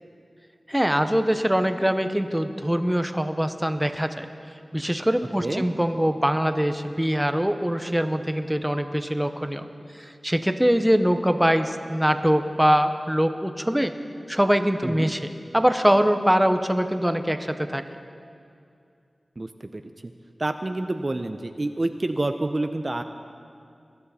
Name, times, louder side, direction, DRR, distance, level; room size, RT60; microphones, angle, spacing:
voice 1, 0.7-4.3 4.7-9.6 10.0-13.9 14.3-17.8, equal, 5° right, 8 dB, 0.8 m, -23 dB
voice 2, 19.4-20.1 20.4-23.0, right 2 dB, 40° right, 8 dB, 0.6 m, -28 dB
21.0 x 13.0 x 4.2 m, 2.4 s
wide cardioid pair, 70°, 0 cm